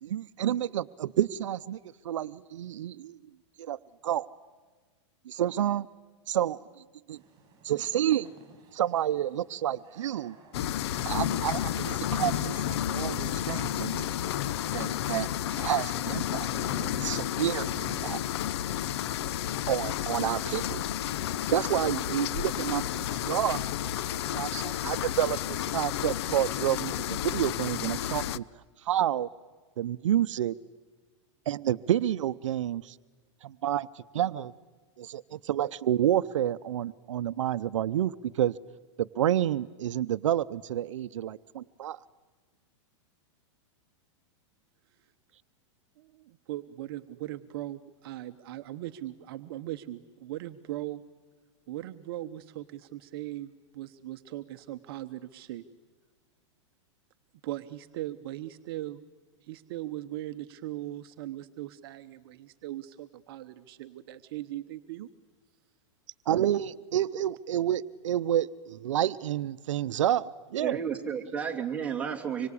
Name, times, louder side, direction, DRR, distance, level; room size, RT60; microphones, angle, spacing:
voice 1, 0.0-1.8 2.0-3.2 3.6-3.8 4.0-4.3 5.3-5.9 6.3-6.6 7.1-7.2 7.6-8.3 8.7-10.4 11.0-14.1 14.7-16.5 17.0-18.2 19.7-20.8 21.5-23.6 24.3-28.4 28.8-29.3 29.8-30.5 31.5-33.0 33.4-33.9 34.1-34.5 35.0-38.5 39.0-42.0 66.3-70.8, right 11 dB, 85° right, 14 dB, 0.7 m, -29 dB
sound 1, 7.1-19.7, right 4 dB, 25° right, 6.9 m, -52 dB
sound 2, 10.5-28.4, left 11 dB, 60° left, 0.7 m, -31 dB
voice 2, 46.0-51.0 51.7-55.6 57.4-59.0 59.4-65.1, right 15 dB, 50° right, 9 dB, 1.0 m, -39 dB
voice 3, 70.6-72.5, right 7 dB, 10° right, -2 dB, 2.9 m, -32 dB
26.0 x 23.5 x 8.5 m, 1.4 s
supercardioid pair, 155°, 16 cm